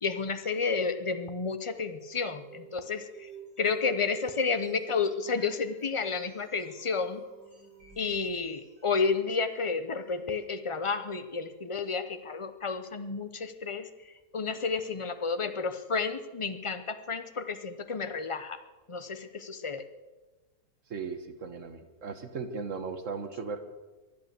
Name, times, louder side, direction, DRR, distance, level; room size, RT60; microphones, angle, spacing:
voice 1, 0.0-3.3 3.6-7.2 8.0-13.9 14.3-18.6 18.9-19.8, left 4 dB, 50° left, 9 dB, 0.3 m, -31 dB
sound 1, 2.0-9.2, right 5 dB, 80° right, 7.0 m, -52 dB
voice 2, 20.9-23.6, right 5 dB, 50° right, 9 dB, 1.4 m, -37 dB
23.0 x 8.7 x 6.8 m, 1.2 s
omnidirectional pair, 1.8 m